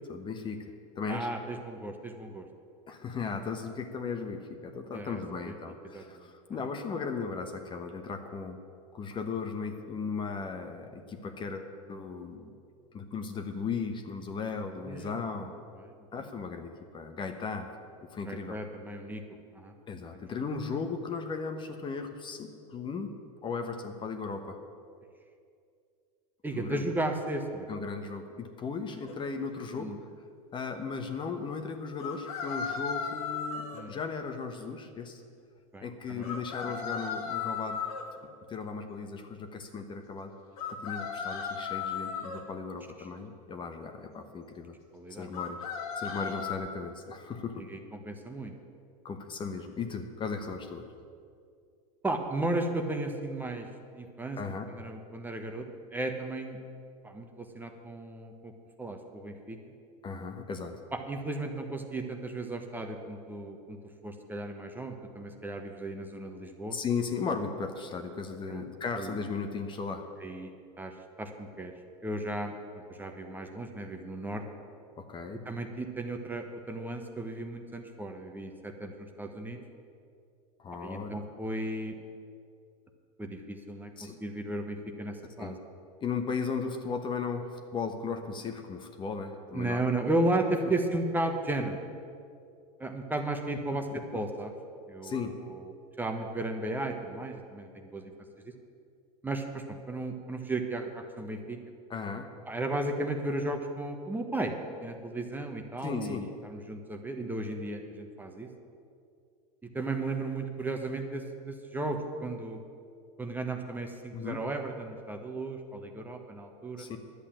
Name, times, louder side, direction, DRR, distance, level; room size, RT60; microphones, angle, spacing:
voice 1, 0.1-0.6 0.9-1.3 2.9-8.6 8.9-12.5 12.9-15.5 16.1-17.7 18.1-18.6 19.9-23.1 23.4-24.6 26.6-26.8 27.7-29.9 30.5-35.2 35.8-37.8 38.2-40.3 40.7-44.7 45.1-45.6 46.0-47.6 49.0-50.9 54.4-54.7 60.0-60.8 66.7-70.1 75.0-75.4 80.6-81.2 84.0-84.2 85.4-85.6 86.0-90.1 94.1-94.2 95.0-95.3 101.9-102.3 105.8-106.2 114.1-114.4 116.8-117.0, left 5 dB, 25° left, 6 dB, 1.0 m, -36 dB
voice 2, 1.1-2.5 4.9-5.5 5.9-6.3 14.8-15.2 18.3-19.2 19.5-19.7 20.1-20.2 26.4-27.7 29.7-30.0 33.7-34.0 35.7-36.4 36.7-36.8 44.9-45.3 47.7-48.5 52.0-53.7 53.9-54.4 54.7-55.6 55.9-56.6 57.0-58.5 58.8-59.6 60.9-63.8 64.0-66.8 68.5-68.6 69.0-69.1 70.2-70.5 70.8-70.9 71.2-71.7 72.0-72.5 72.9-74.4 75.4-79.6 80.8-82.0 83.2-85.5 89.5-91.8 92.8-93.9 94.1-94.5 94.9-95.7 96.0-98.1 99.2-101.6 102.5-104.5 104.8-108.5 109.7-112.6 113.2-116.9, right 2 dB, 10° right, 4 dB, 1.1 m, -35 dB
sound 1, 29.1-29.2 32.0-33.8 36.2-38.0 40.6-42.4 45.3-46.6, left 6 dB, 85° left, 2.2 m, -35 dB
11.0 x 8.3 x 8.9 m, 2.4 s
supercardioid pair, 120°, 18 cm